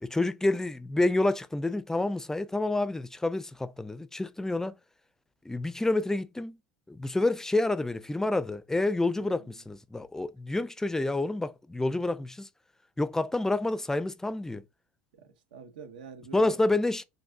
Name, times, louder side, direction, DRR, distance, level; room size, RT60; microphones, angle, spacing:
voice 1, 0.0-4.7 5.4-6.6 6.9-12.5 13.0-14.6 16.3-17.0, left 2 dB, 10° left, 0.4 m, -28 dB
voice 2, 9.1-9.6 15.1-16.7, right 5 dB, 75° right, 0.8 m, -47 dB
5.9 x 2.6 x 2.6 m
hypercardioid pair, 75°, 5 cm